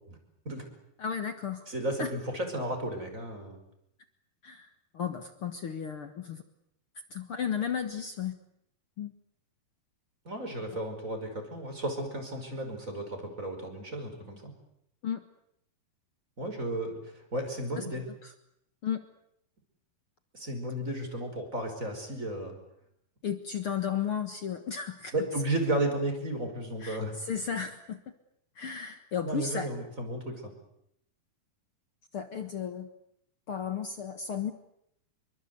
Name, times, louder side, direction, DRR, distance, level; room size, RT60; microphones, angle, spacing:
voice 1, 1.0-1.7 2.0-2.1 4.4-4.7 4.9-6.4 7.1-8.4 9.0-9.1 15.0-15.2 17.7-17.8 18.2-18.3 18.8-19.0 23.2-25.1 26.8-28.0 28.5-29.7 32.1-32.9 33.5-34.5, left 7 dB, 60° left, 8 dB, 1.4 m, -34 dB
voice 2, 1.7-3.6 10.3-14.5 16.4-18.0 20.3-22.6 25.1-27.1 29.2-30.4, right 1 dB, 20° right, 5 dB, 5.3 m, -33 dB
27.0 x 23.5 x 8.1 m, 0.76 s
omnidirectional pair, 4.5 m